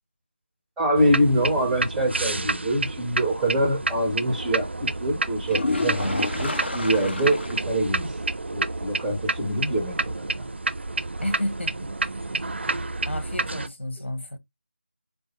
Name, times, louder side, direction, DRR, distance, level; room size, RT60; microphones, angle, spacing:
voice 1, 0.8-8.1 8.5-10.3, right 1 dB, 5° right, 0.5 m, -25 dB
sound 1, 1.0-13.7, right 2 dB, 70° right, 0.5 m, -29 dB
sound 2, 5.4-7.7 8.0-8.1 8.6-8.7 12.4-12.5, left 2 dB, 65° left, 1.1 m, -29 dB
voice 2, 11.2-11.9 13.1-14.4, left 1 dB, 85° left, 1.4 m, -31 dB
4.6 x 2.0 x 3.2 m
figure-of-eight pair, 165°, 6 cm